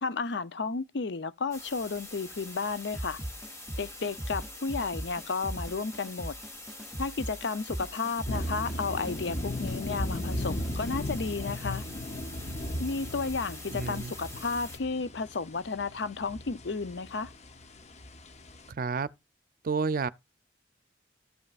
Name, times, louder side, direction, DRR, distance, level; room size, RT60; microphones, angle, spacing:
voice 1, 0.0-3.2 3.8-6.3 7.0-11.8 12.8-17.3, left 4 dB, 70° left, 0.6 m, -33 dB
sound 1, 1.5-14.8, left 1 dB, 15° left, 2.8 m, -45 dB
sound 2, 2.9-10.9, right 1 dB, ahead, 0.9 m, -39 dB
sound 3, 8.3-18.7, left 1 dB, 40° left, 0.8 m, -37 dB
voice 2, 13.7-14.1 18.7-19.1 19.6-20.1, right 4 dB, 55° right, 0.5 m, -30 dB
14.0 x 5.5 x 2.4 m
head